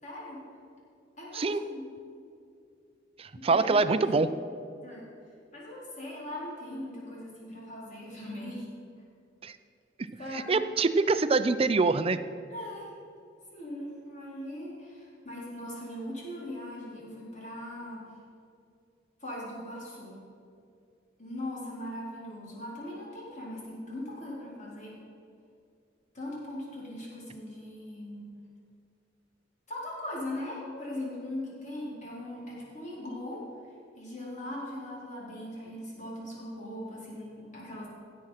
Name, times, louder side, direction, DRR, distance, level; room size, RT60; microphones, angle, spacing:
voice 1, 0.0-0.4 1.2-1.9 3.3-4.3 4.8-5.1 5.5-8.7 10.2-10.6 12.5-12.9 13.5-18.1 19.2-20.2 21.2-25.0 26.1-28.3 29.7-33.4 34.0-37.9, left 1 dB, 40° left, -5 dB, 3.9 m, -40 dB
voice 2, 3.2-4.3 9.4-9.6 10.3-12.2, right 3 dB, 30° right, 12 dB, 0.5 m, -25 dB
16.5 x 7.9 x 5.7 m, 2.5 s
head